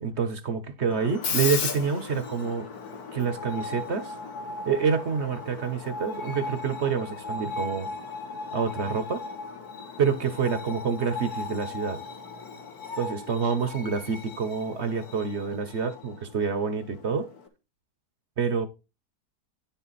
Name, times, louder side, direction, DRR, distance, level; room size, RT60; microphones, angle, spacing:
voice 1, 0.0-2.7 3.1-4.1 4.7-7.9 8.5-9.2 10.0-12.0 13.0-17.3 18.4-18.7, right 6 dB, 50° right, 1.0 m, -27 dB
Screech, 0.9-17.5, left 4 dB, 65° left, 1.7 m, -37 dB
9.9 x 5.9 x 4.1 m
omnidirectional pair, 1.8 m